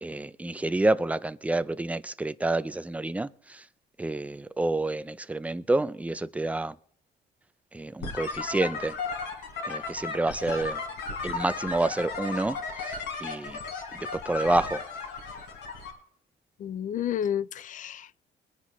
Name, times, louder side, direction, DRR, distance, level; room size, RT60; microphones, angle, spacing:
voice 1, 0.0-3.6 4.0-6.8 7.7-9.0 9.6-10.8 11.2-12.6 12.8-13.6 13.9-14.8, right 2 dB, 10° right, 0.5 m, -28 dB
sound 1, 8.0-15.9, left 4 dB, 85° left, 4.4 m, -35 dB
voice 2, 16.6-18.2, left 9 dB, 50° left, 0.4 m, -31 dB
23.0 x 9.7 x 3.1 m
cardioid pair, 145°, 17 cm